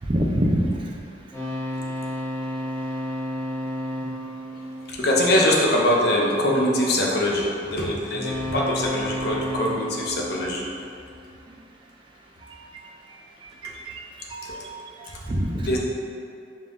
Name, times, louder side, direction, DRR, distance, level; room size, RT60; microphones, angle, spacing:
voice 1, 0.1-0.7 12.5-12.6 13.4-13.9 14.3-14.6 15.0-15.8, equal, 30° right, -1 dB, 0.3 m, -26 dB
sound 1, 1.3-5.7 8.1-11.4, equal, 10° left, 0.8 m, -32 dB
voice 2, 4.9-10.7 15.6-15.8, left 1 dB, 60° left, -2 dB, 0.5 m, -22 dB
5.3 x 2.4 x 2.4 m, 2.4 s
head